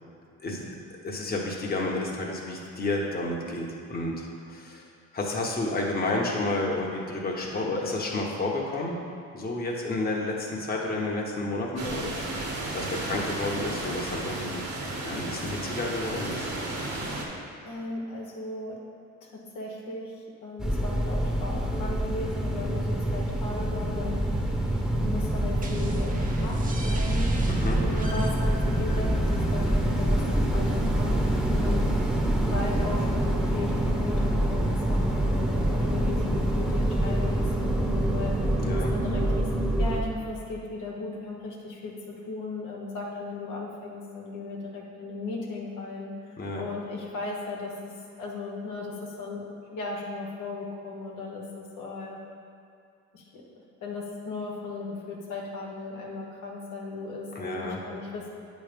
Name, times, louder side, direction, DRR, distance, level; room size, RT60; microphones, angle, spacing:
voice 1, 1.0-4.8 5.1-9.0 9.3-12.2 12.7-14.6 15.0-16.5 27.5-27.8 38.6-38.9 46.4-46.6 57.3-57.8, left 2 dB, 30° left, -2 dB, 1.0 m, -30 dB
sound 1, 11.8-17.3, right 2 dB, 65° right, 1.4 m, -33 dB
voice 2, 17.6-18.8 19.2-24.2 24.9-27.3 27.8-31.9 32.4-38.4 38.9-39.5 39.8-46.1 46.6-47.9 48.2-49.4 49.7-52.2 53.1-53.4 53.8-58.3, left 3 dB, 85° left, -2 dB, 1.2 m, -36 dB
sound 2, 20.6-40.0, right 1 dB, ahead, 0.9 m, -26 dB
sound 3, 25.6-31.1, right 1 dB, 30° right, 0.8 m, -42 dB
8.4 x 3.2 x 5.2 m, 2.5 s
cardioid pair, 90°, 30 cm